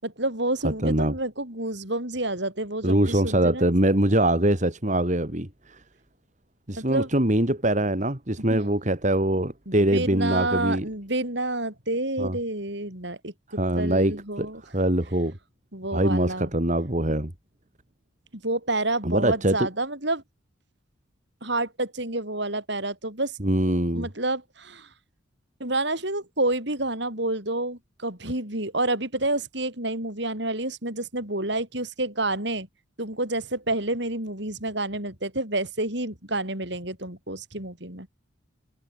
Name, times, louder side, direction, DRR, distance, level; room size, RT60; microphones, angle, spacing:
voice 1, 0.0-3.7 6.8-7.1 8.5-8.7 9.7-14.6 15.7-16.5 18.3-20.2 21.4-23.4 23.9-24.9 25.6-32.7 33.0-38.1, right 2 dB, 60° right, 7.4 m, -29 dB
voice 2, 0.6-1.1 2.8-5.8 6.7-10.9 12.2-12.4 13.6-14.5 14.7-15.4 15.9-17.3 19.0-19.7 23.4-24.1, right 1 dB, 35° right, 2.9 m, -23 dB
head